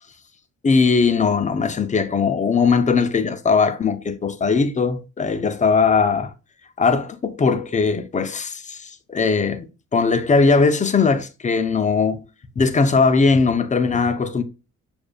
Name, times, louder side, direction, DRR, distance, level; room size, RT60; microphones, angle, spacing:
voice 1, 0.6-6.3 6.8-12.2 12.6-14.4, left 4 dB, 25° left, 0.5 m, -19 dB
6.5 x 2.5 x 2.2 m
cardioid pair, 90°, 30 cm